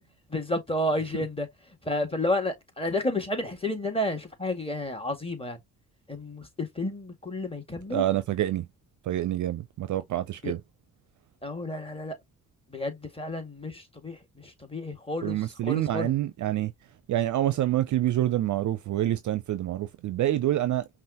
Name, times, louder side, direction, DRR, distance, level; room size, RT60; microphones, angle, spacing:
voice 1, 0.3-1.5 1.8-5.6 6.1-8.1 10.4-10.5 11.4-12.2 12.7-16.1, left 1 dB, 15° left, 1.8 m, -31 dB
voice 2, 7.9-8.7 9.1-10.6 15.2-16.7 17.1-20.9, right 13 dB, 45° right, 0.5 m, -27 dB
5.4 x 2.5 x 2.8 m
hypercardioid pair, 40°, 41 cm